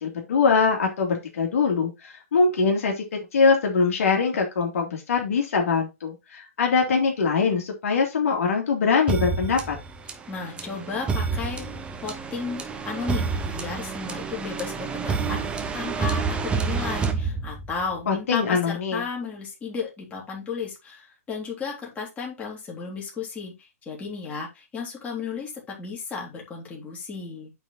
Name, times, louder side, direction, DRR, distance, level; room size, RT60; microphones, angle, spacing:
voice 1, 0.0-3.0 3.3-9.8 18.1-19.0, left 5 dB, 60° left, 2 dB, 2.5 m, -23 dB
sound 1, 9.1-17.9, right 5 dB, 10° right, 0.9 m, -29 dB
voice 2, 10.3-11.7 12.0-27.5, left 5 dB, 15° left, -1 dB, 2.9 m, -34 dB
8.9 x 4.1 x 4.0 m, 0.24 s
hypercardioid pair, 130°, 8 cm